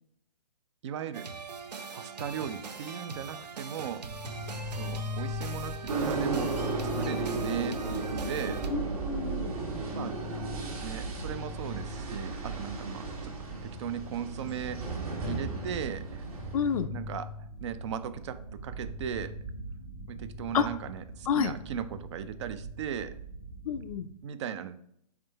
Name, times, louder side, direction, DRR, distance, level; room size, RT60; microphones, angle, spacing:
voice 1, 0.8-1.3 1.9-4.0 4.8-6.5 7.0-8.6 9.9-10.2 10.8-13.3 13.6-14.8 15.2-16.2 16.9-17.3 17.6-19.3 20.1-23.2 24.2-24.8, right 8 dB, 45° right, 12 dB, 0.4 m, -37 dB
sound 1, 1.1-8.7, right 5 dB, 85° right, 0.6 m, -41 dB
sound 2, 4.0-24.0, right 1 dB, 25° right, 1.0 m, -40 dB
sound 3, 5.9-16.8, right 3 dB, 60° right, 1.3 m, -35 dB
voice 2, 8.7-9.6 16.5-16.9 20.5-20.7 21.3-21.5 23.7-24.1, left 7 dB, 60° left, 10 dB, 0.4 m, -29 dB
4.4 x 3.6 x 3.3 m, 0.71 s
hypercardioid pair, 130°, 21 cm